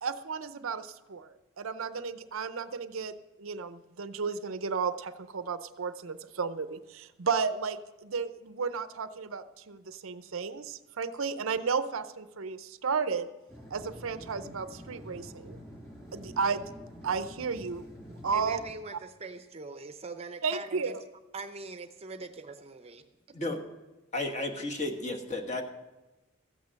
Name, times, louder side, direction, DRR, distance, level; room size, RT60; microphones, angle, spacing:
voice 1, 0.0-13.3 13.7-15.6 16.1-16.7 17.0-17.9 18.2-18.6 20.4-21.0, right 5 dB, 70° right, 12 dB, 0.6 m, -33 dB
sound 1, 13.5-18.7, equal, 10° left, 3.2 m, -47 dB
voice 2, 18.3-21.0 21.3-23.0, right 3 dB, 30° right, 8 dB, 0.7 m, -42 dB
voice 3, 23.3-23.6 24.1-25.6, left 2 dB, 30° left, 2 dB, 1.3 m, -33 dB
14.0 x 8.3 x 6.4 m, 1.1 s
head